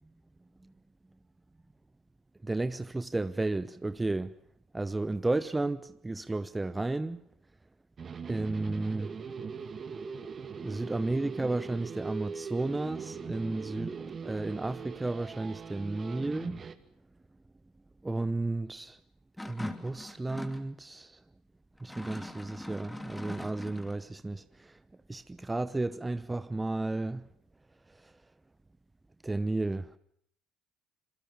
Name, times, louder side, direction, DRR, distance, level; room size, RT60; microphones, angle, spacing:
voice 1, 2.4-4.4 4.7-7.2 8.3-9.1 10.6-14.0 14.2-16.6 18.0-19.0 19.4-21.2 21.8-24.8 25.1-27.3 28.0-28.1 29.2-29.9, right 2 dB, 15° right, 0.9 m, -33 dB
sound 1, 8.0-16.8, right 6 dB, 40° right, 2.1 m, -41 dB
sound 2, 19.4-20.7 21.8-24.0, left 1 dB, 10° left, 2.9 m, -42 dB
26.5 x 22.5 x 7.1 m
supercardioid pair, 75°, 0 cm